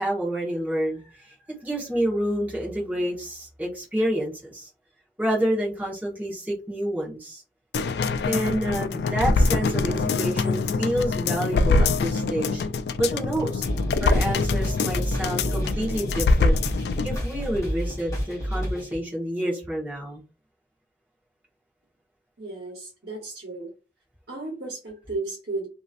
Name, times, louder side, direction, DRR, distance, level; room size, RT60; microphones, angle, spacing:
voice 1, 0.0-4.7 5.2-7.4 8.2-12.6 13.0-13.7 14.0-16.6 17.0-20.2, right 1 dB, 10° right, -5 dB, 1.2 m, -28 dB
sound 1, 7.7-17.2 17.5-17.6, left 3 dB, 65° left, 0.3 m, -24 dB
sound 2, 13.6-19.0, equal, 20° left, 1.1 m, -30 dB
voice 2, 22.4-23.7 24.3-25.7, right 3 dB, 65° right, -3 dB, 1.1 m, -34 dB
3.0 x 2.7 x 2.5 m, 0.31 s
head